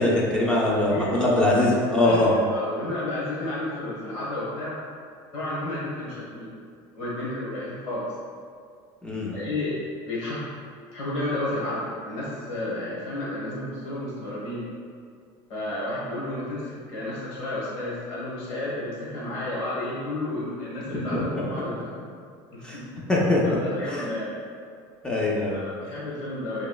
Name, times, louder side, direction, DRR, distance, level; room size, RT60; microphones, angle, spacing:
voice 1, 0.0-2.3 9.0-9.4 21.1-21.9 22.6-22.8 23.1-23.4 23.8-24.1 25.0-25.6, left 1 dB, 10° left, -5 dB, 0.3 m, -23 dB
voice 2, 0.7-4.8 5.3-6.5 6.9-8.0 9.3-9.8 10.1-10.4 10.9-14.6 15.5-21.8 22.5-22.9 23.4-24.4 25.5-26.7, left 1 dB, 55° left, -7 dB, 1.1 m, -32 dB
2.9 x 2.7 x 2.2 m, 2.2 s
cardioid pair, 160°, 11 cm